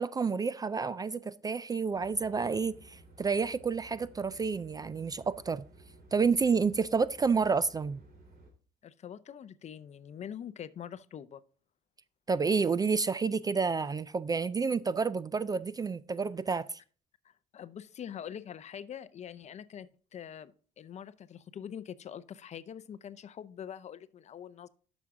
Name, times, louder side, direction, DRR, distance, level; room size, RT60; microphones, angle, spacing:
voice 1, 0.0-5.6 6.1-8.0 12.3-16.8, right 5 dB, 20° right, 0.3 m, -29 dB
sound 1, 1.9-8.5, right 1 dB, 60° right, 3.5 m, -56 dB
voice 2, 8.8-11.4 17.2-24.7, left 9 dB, 40° left, 0.6 m, -44 dB
11.5 x 6.2 x 3.7 m
cardioid pair, 110°, 17 cm